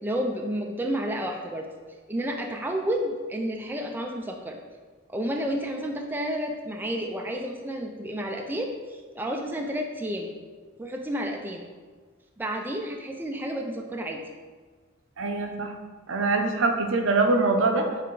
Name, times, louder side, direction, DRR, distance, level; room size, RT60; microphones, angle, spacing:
voice 1, 0.0-1.6 2.1-4.6 5.1-10.3 10.8-11.6 12.4-14.2, equal, 10° right, 2 dB, 0.4 m, -31 dB
voice 2, 15.2-15.7 16.1-18.0, right 3 dB, 70° right, 4 dB, 0.6 m, -23 dB
6.0 x 3.4 x 4.6 m, 1.5 s
head